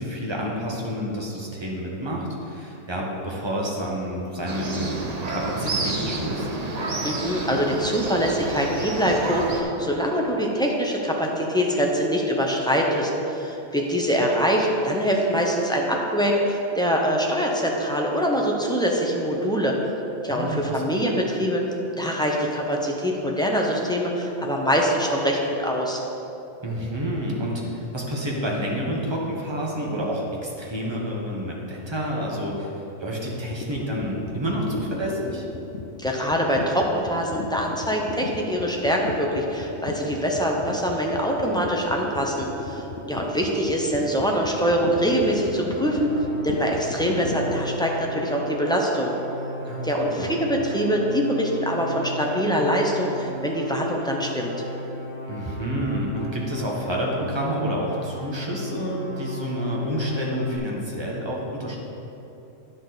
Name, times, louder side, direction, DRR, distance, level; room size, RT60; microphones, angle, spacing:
voice 1, 0.0-5.0 5.3-6.5 20.3-21.0 26.6-35.4 49.6-49.9 50.2-50.3 55.3-61.8, equal, 20° right, -3 dB, 1.2 m, -29 dB
sound 1, 4.5-9.6, right 2 dB, 40° right, 0.8 m, -29 dB
voice 2, 7.0-19.8 20.2-21.6 22.0-26.0 36.0-46.1 46.4-49.1 49.8-54.5, equal, 5° left, -1 dB, 0.7 m, -24 dB
sound 2, 33.5-47.6, left 4 dB, 60° left, 0.7 m, -37 dB
sound 3, 44.3-60.6, left 1 dB, 25° left, 2.0 m, -36 dB
10.0 x 6.7 x 4.1 m, 3.0 s
omnidirectional pair, 1.3 m